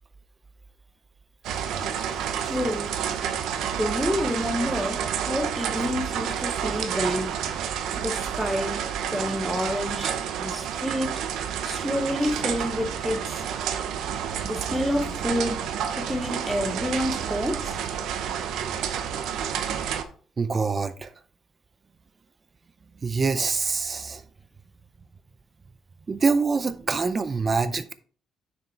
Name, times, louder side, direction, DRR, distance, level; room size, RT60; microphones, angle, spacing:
sound 1, 1.4-20.0, right 8 dB, 75° right, 0.8 m, -30 dB
voice 1, 2.4-2.9 3.7-7.3 8.0-8.8 9.1-11.2 11.6-13.4 14.4-15.7 16.0-17.8, equal, ahead, 0.8 m, -28 dB
voice 2, 20.4-21.1 23.0-24.2 26.1-27.9, right 4 dB, 25° right, 0.5 m, -25 dB
6.4 x 4.7 x 4.3 m
cardioid pair, 160°, 0 cm